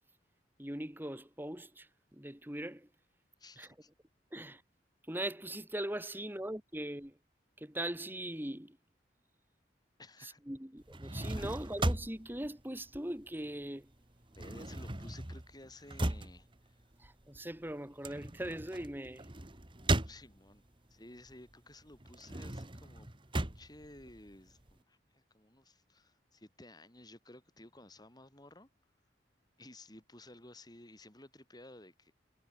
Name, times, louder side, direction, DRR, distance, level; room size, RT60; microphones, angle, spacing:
voice 1, 0.6-2.9 3.6-3.7 4.3-4.6 5.1-7.2 7.6-8.8 10.5-13.9 17.0-19.3, right 1 dB, 10° right, 2.1 m, -40 dB
voice 2, 3.4-3.9 6.0-6.1 10.0-10.4 11.3-11.6 14.3-16.8 20.0-20.6 20.9-28.7 29.6-32.1, left 1 dB, 25° left, 5.4 m, -55 dB
sound 1, 10.8-13.6 13.9-20.7 21.2-24.7, right 1 dB, 30° right, 1.9 m, -37 dB
head